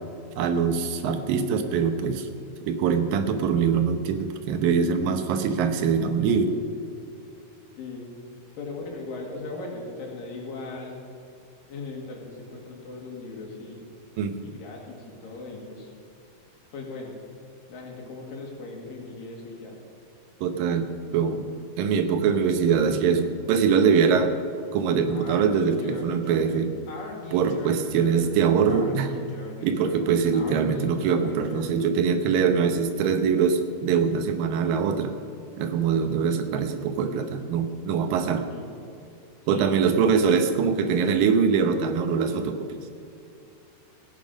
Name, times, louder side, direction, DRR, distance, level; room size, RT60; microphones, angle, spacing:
voice 1, 0.4-2.3 2.6-6.6 14.2-14.4 20.4-21.4 21.8-24.3 24.7-26.7 27.3-29.1 29.6-35.1 35.6-38.5 39.5-42.8, right 6 dB, 85° right, 7 dB, 2.7 m, -23 dB
voice 2, 7.8-8.2 8.5-11.0 11.7-13.8 14.4-15.9 16.7-17.2 17.7-19.8 38.5-39.1 39.5-40.1, left 3 dB, 85° left, -1 dB, 3.9 m, -38 dB
Speech, 25.1-31.9, left 2 dB, 55° left, 3.0 m, -40 dB
16.5 x 9.9 x 5.2 m, 2.6 s
omnidirectional pair, 3.9 m